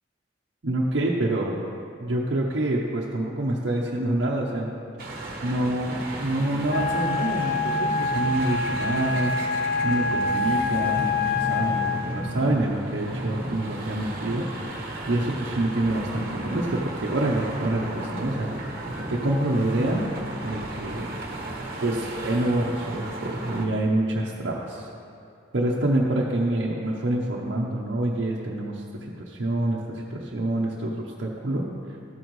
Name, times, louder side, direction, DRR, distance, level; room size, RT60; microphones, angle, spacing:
voice 1, 0.6-1.6 2.0-4.7 5.4-9.3 9.8-14.5 15.1-18.5 19.1-20.1 20.4-21.1 21.8-24.9 25.5-28.8 29.2-31.6, right 1 dB, 80° right, -4 dB, 0.9 m, -26 dB
sound 1, 5.0-23.7, right 1 dB, 55° right, 1.2 m, -35 dB
Wind instrument woodwind instrument, 6.7-12.0, left 4 dB, 75° left, 0.6 m, -26 dB
13.0 x 9.0 x 3.1 m, 2.5 s
head